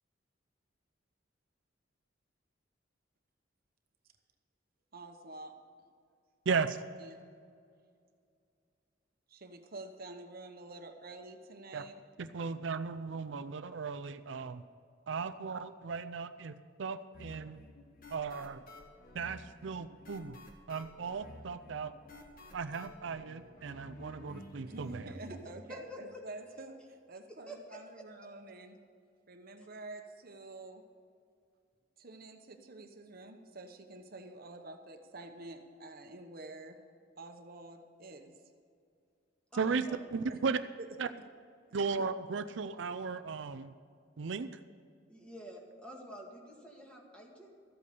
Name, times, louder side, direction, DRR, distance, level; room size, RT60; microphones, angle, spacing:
voice 1, 4.9-5.5 7.0-7.2 9.3-12.0 24.7-28.8 29.3-30.8 32.0-36.8 37.2-38.3 39.7-39.8 40.3-40.4 40.8-40.9, right 2 dB, 50° right, 6 dB, 1.0 m, -48 dB
voice 2, 6.5-6.8 11.7-11.8 12.2-14.6 15.1-17.6 18.1-18.6 19.1-20.4 20.7-21.9 22.5-25.1 39.5-40.6 41.0-41.1 41.7-43.7 44.2-44.5, right 5 dB, 75° right, 9 dB, 0.5 m, -36 dB
sound 1, 17.1-25.4, left 1 dB, 50° left, 1.6 m, -52 dB
voice 3, 25.7-26.2 27.5-28.0 29.6-29.7 39.5-40.0 45.1-47.5, equal, 5° left, -1 dB, 2.0 m, -48 dB
14.0 x 8.4 x 6.8 m, 2.3 s
head